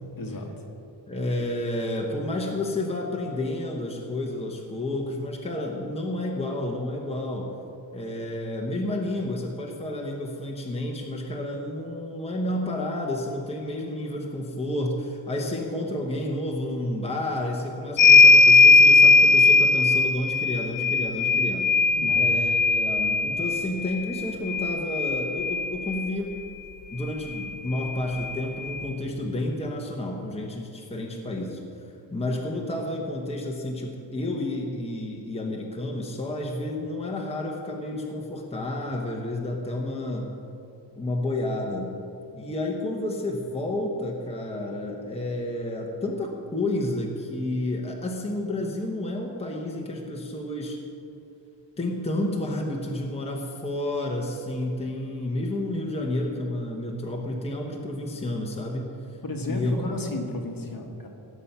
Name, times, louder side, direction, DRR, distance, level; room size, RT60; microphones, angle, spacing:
voice 1, 0.2-0.6 22.0-22.3 59.2-61.1, left 1 dB, 50° left, 2 dB, 1.5 m, -33 dB
voice 2, 1.1-7.5 7.9-21.7 22.1-26.3 26.9-31.6 32.1-40.3 41.0-41.9 42.3-50.8 51.8-58.9 59.5-59.9, left 1 dB, 15° left, -1 dB, 1.0 m, -30 dB
sound 1, 18.0-26.1 27.4-27.5 27.7-28.8, left 3 dB, 80° left, 0.6 m, -18 dB
17.5 x 7.1 x 5.6 m, 2.6 s
wide cardioid pair, 175°, 45 cm